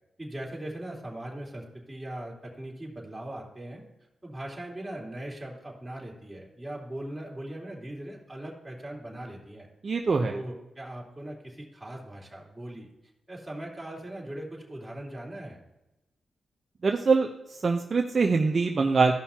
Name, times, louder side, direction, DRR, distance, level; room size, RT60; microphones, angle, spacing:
voice 1, 0.2-3.8 4.2-9.7 10.2-12.9 13.3-15.6, right 1 dB, 15° right, -3 dB, 3.3 m, -40 dB
voice 2, 9.8-10.4 16.8-17.3 17.6-19.1, right 4 dB, 45° right, 2 dB, 0.8 m, -23 dB
15.5 x 5.6 x 2.9 m, 0.93 s
cardioid pair, 80°, 0 cm